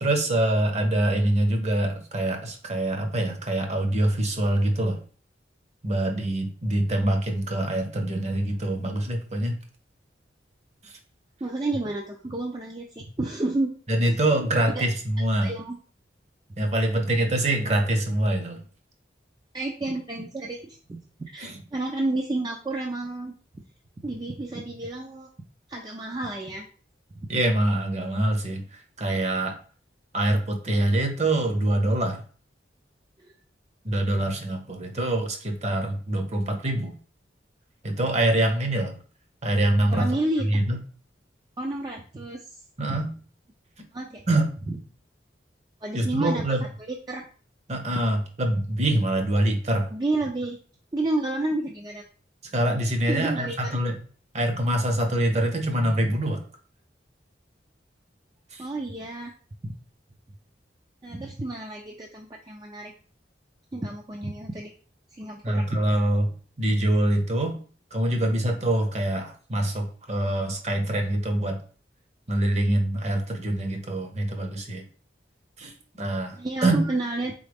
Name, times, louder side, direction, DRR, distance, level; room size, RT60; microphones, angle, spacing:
voice 1, 0.0-5.0 5.8-9.6 10.8-10.9 13.9-15.5 16.6-18.6 21.4-21.6 27.3-29.5 30.1-32.2 33.8-36.9 37.8-39.0 39.4-40.1 40.4-40.8 42.8-43.1 43.8-43.9 44.3-44.5 45.9-46.6 47.7-49.9 52.5-54.0 54.3-56.4 58.5-58.7 65.4-66.3 66.6-67.6 67.9-71.6 72.3-74.9 75.6-76.8, right 1 dB, 40° right, 5 dB, 0.8 m, -25 dB
voice 2, 11.4-13.7 14.1-14.2 14.8-14.9 15.4-15.8 19.5-23.3 24.0-25.3 25.7-26.7 39.9-40.5 41.6-42.5 42.9-43.0 43.9-44.2 44.7-44.8 45.8-46.5 46.9-47.2 49.9-50.6 50.9-52.0 53.1-53.8 58.6-59.3 59.6-59.7 61.0-62.9 63.7-64.7 65.1-65.6 76.4-77.3, right 2 dB, 20° right, 1 dB, 0.4 m, -30 dB
4.0 x 3.8 x 3.4 m, 0.42 s
head